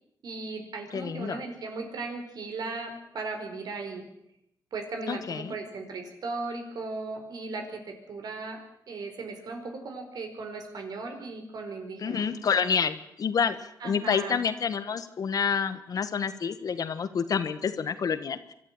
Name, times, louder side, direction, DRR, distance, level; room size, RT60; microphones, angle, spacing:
voice 1, 0.2-4.0 4.7-8.6 8.9-12.3 13.8-14.4, right 3 dB, 65° right, 5 dB, 4.9 m, -37 dB
voice 2, 0.9-1.4 5.1-5.5 12.0-18.5, left 6 dB, 55° left, 11 dB, 1.6 m, -28 dB
25.0 x 12.5 x 9.1 m, 0.77 s
cardioid pair, 95°, 7 cm